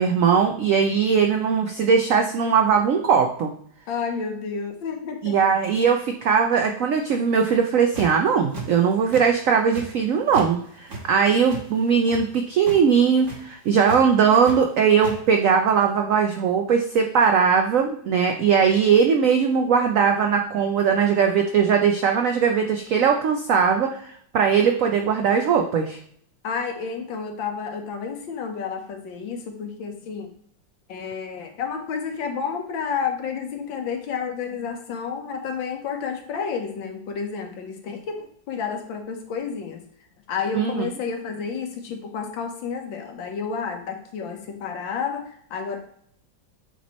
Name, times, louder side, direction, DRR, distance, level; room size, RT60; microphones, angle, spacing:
voice 1, 0.0-3.5 5.2-26.0 40.5-40.9, right 6 dB, 85° right, 4 dB, 0.7 m, -20 dB
voice 2, 3.9-5.4 26.4-30.3 30.9-39.8 40.3-45.8, left 6 dB, 90° left, 4 dB, 1.7 m, -30 dB
sound 1, 7.7-8.2 8.5-9.2 9.5-10.5 10.8-12.2 12.6-12.8 13.1-13.4 13.8-14.6 14.8-15.1, right 3 dB, 40° right, 1.5 m, -35 dB
8.1 x 3.1 x 4.1 m, 0.65 s
omnidirectional pair, 2.0 m